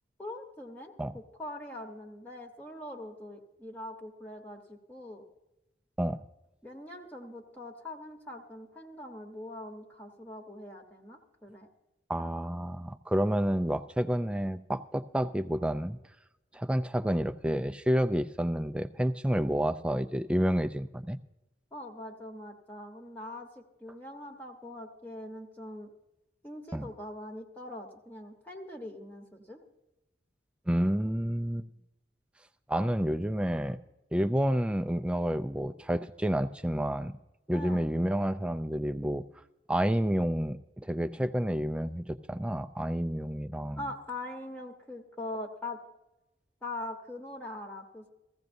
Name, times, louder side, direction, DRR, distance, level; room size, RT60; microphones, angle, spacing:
voice 1, 0.2-5.2 6.6-11.7 21.7-25.9 26.4-29.6 37.5-37.8 43.8-45.8 46.6-48.1, left 1 dB, 10° left, 1 dB, 1.0 m, -42 dB
voice 2, 12.1-16.0 16.5-21.2 26.7-26.9 30.7-31.7 32.7-33.8 34.1-37.1 37.5-39.2 39.7-43.9, equal, 5° right, 9 dB, 0.3 m, -29 dB
16.0 x 15.0 x 2.6 m, 0.96 s
head